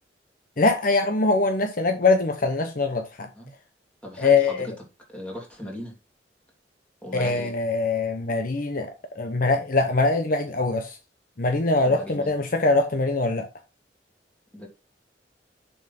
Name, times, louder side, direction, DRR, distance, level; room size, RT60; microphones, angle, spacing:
voice 1, 0.6-3.3 4.2-4.7 7.1-8.9 9.2-11.0 11.4-13.5, left 3 dB, 50° left, 0.9 m, -22 dB
voice 2, 4.0-4.7 5.1-5.9 7.0-7.5 11.8-12.3 14.5-14.7, equal, 5° left, 2.9 m, -38 dB
7.2 x 5.6 x 4.2 m
head